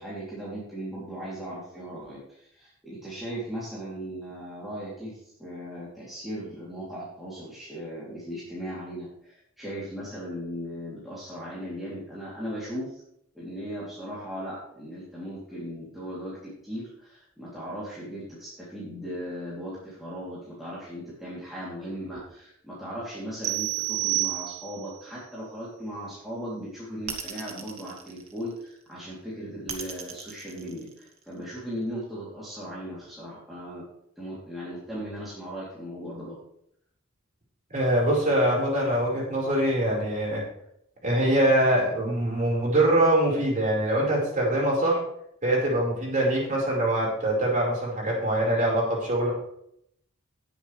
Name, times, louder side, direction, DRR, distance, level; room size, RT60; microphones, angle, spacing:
voice 1, 0.0-13.0 13.3-33.8 34.2-36.4, equal, ahead, -9 dB, 3.0 m, -37 dB
sound 1, 23.4-25.0, right 23 dB, 55° right, 0.4 m, -29 dB
sound 2, 27.1-28.8 29.7-31.4, right 6 dB, 80° right, 1.9 m, -38 dB
voice 2, 37.7-40.4 41.0-45.0 45.4-49.3, right 1 dB, 40° right, -3 dB, 4.7 m, -23 dB
18.0 x 7.3 x 3.3 m, 0.73 s
head